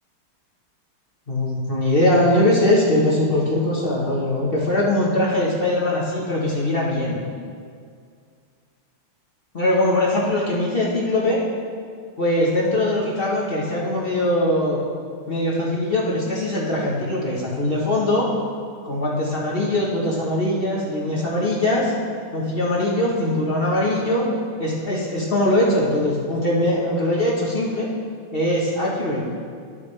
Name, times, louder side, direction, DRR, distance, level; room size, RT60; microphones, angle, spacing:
voice 1, 1.3-7.2 9.5-11.4 12.2-14.8 15.3-18.3 18.8-21.9 22.3-24.3 24.6-27.9 28.3-29.2, left 1 dB, 35° left, -5 dB, 1.1 m, -21 dB
11.5 x 7.4 x 3.3 m, 2.2 s
omnidirectional pair, 2.4 m